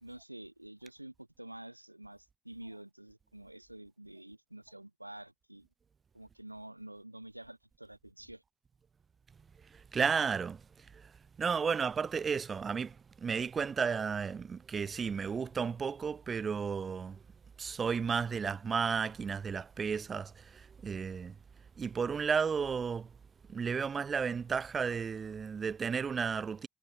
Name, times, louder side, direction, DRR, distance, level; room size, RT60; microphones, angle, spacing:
voice 1, 0.0-5.7 6.1-8.4, right 1 dB, 90° right, 0.9 m, -49 dB
voice 2, 9.7-10.6 11.0-11.1 11.4-17.2 17.6-21.4 21.8-23.1 23.5-26.7, right 6 dB, 35° right, 0.4 m, -33 dB
figure-of-eight pair, 55°, 0 cm